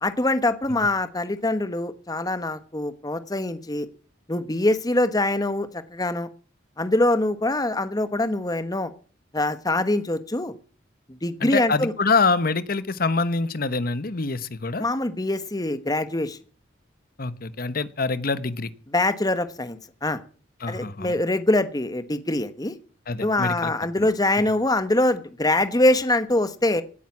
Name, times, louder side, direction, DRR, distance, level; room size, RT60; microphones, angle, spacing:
voice 1, 0.0-3.9 4.3-6.3 6.8-8.9 9.3-10.5 11.2-11.9 14.8-16.4 18.9-20.2 20.7-22.7 23.2-26.8, left 1 dB, 20° left, 11 dB, 1.2 m, -24 dB
voice 2, 11.4-14.8 17.2-18.7 20.6-21.2 23.1-23.7 24.0-24.1 24.4-24.5, left 4 dB, 50° left, 14 dB, 1.1 m, -25 dB
17.5 x 9.3 x 7.3 m, 0.41 s
head